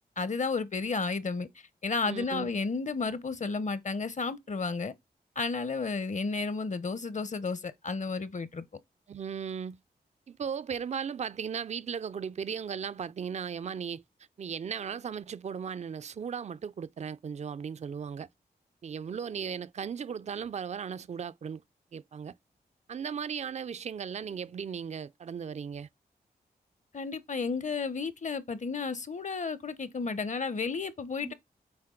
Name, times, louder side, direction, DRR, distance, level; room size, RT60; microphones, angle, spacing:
voice 1, 0.2-1.5 1.8-4.9 5.4-8.6 26.9-31.3, left 4 dB, 50° left, 0.8 m, -32 dB
voice 2, 2.0-2.5 9.1-9.8 10.3-14.0 14.4-18.3 18.8-21.6 21.9-22.3 22.9-25.9 31.2-31.3, right 7 dB, 45° right, 0.4 m, -36 dB
8.7 x 3.8 x 3.8 m
cardioid pair, 55°, 16 cm